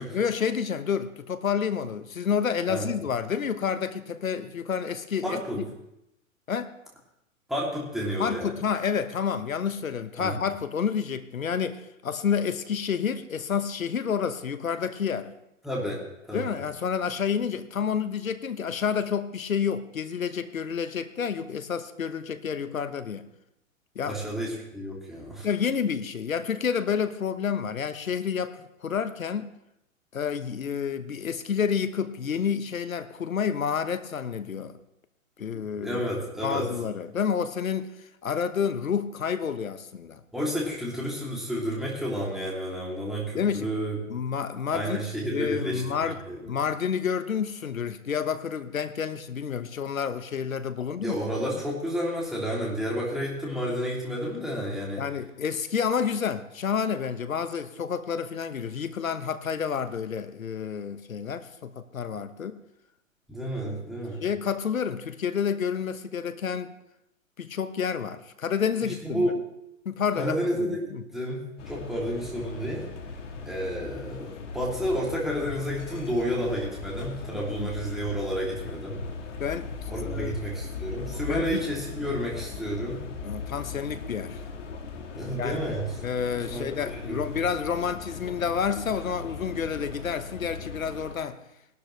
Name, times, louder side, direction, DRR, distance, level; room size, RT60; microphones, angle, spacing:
voice 1, 0.1-5.7 6.5-6.7 8.2-15.3 16.3-23.3 23.9-24.2 25.4-29.5 30.1-34.8 35.4-36.0 36.4-40.2 43.3-43.7 44.1-46.2 46.5-51.2 55.0-62.6 63.6-63.9 64.2-66.7 67.4-69.3 69.8-71.0 77.3-77.7 79.4-80.3 81.3-81.6 83.2-84.4 85.3-85.6 86.0-91.4, left 7 dB, 75° left, 11 dB, 1.2 m, -29 dB
voice 2, 5.2-5.6 7.5-8.5 10.2-10.4 15.6-16.5 24.1-25.5 35.5-36.7 40.3-44.0 44.7-46.4 51.0-55.0 63.3-64.2 69.0-69.4 70.2-72.9 73.4-79.0 79.9-83.0 85.1-85.9 86.5-87.4, equal, ahead, -4 dB, 3.0 m, -31 dB
sound 1, 71.6-91.1, left 4 dB, 60° left, 1.9 m, -38 dB
19.0 x 12.0 x 3.3 m, 0.85 s
figure-of-eight pair, 120°, 41 cm